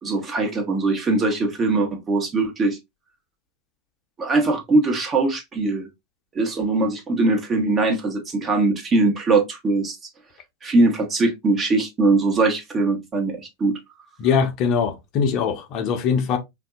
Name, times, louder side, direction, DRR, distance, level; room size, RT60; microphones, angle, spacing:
voice 1, 0.0-2.8 4.2-5.9 6.3-10.0 10.6-13.8, right 3 dB, 30° right, 1.1 m, -21 dB
voice 2, 14.2-16.4, left 6 dB, 50° left, 0.7 m, -22 dB
3.6 x 2.6 x 2.3 m
hypercardioid pair, 105°, 0 cm